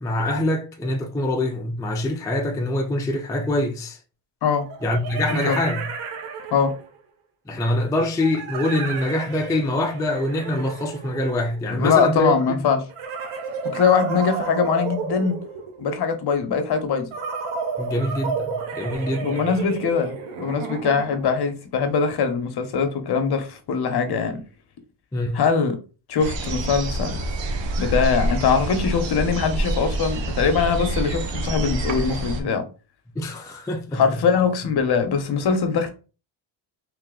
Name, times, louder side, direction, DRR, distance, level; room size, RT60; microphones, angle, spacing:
voice 1, 0.0-4.0 4.8-5.8 7.5-12.6 17.8-19.7 25.1-25.4 33.2-34.0, left 1 dB, 10° left, 0.4 m, -24 dB
sound 1, 3.1-3.2 4.6-7.0 8.2-11.7 12.9-15.9 17.1-21.4, right 5 dB, 90° right, 1.0 m, -32 dB
voice 2, 11.7-12.8 13.6-15.4 15.8-17.1 19.2-24.4 25.3-25.8 26.1-27.2 27.8-32.6 33.9-35.9, left 6 dB, 55° left, 0.9 m, -22 dB
sound 2, 26.2-32.4, right 1 dB, 65° right, 1.0 m, -27 dB
3.2 x 2.9 x 3.7 m
cardioid pair, 105°, 49 cm